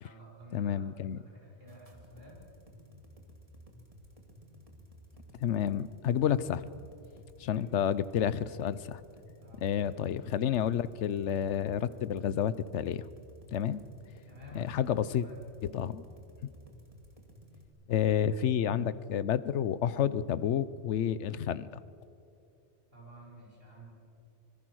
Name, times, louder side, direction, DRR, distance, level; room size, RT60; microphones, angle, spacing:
voice 1, 0.0-0.9 1.2-2.4 7.4-7.7 9.4-9.9 14.3-15.4 22.9-23.9, right 1 dB, 55° right, -3 dB, 6.0 m, -52 dB
voice 2, 0.5-1.2 5.4-6.7 7.4-9.0 9.6-13.0 13.5-13.8 14.5-15.3 15.7-16.0 17.9-21.7, left 9 dB, 75° left, 17 dB, 1.0 m, -30 dB
sound 1, 1.7-17.7, equal, 30° right, 2.4 m, -54 dB
25.0 x 21.0 x 6.3 m, 2.6 s
omnidirectional pair, 1.2 m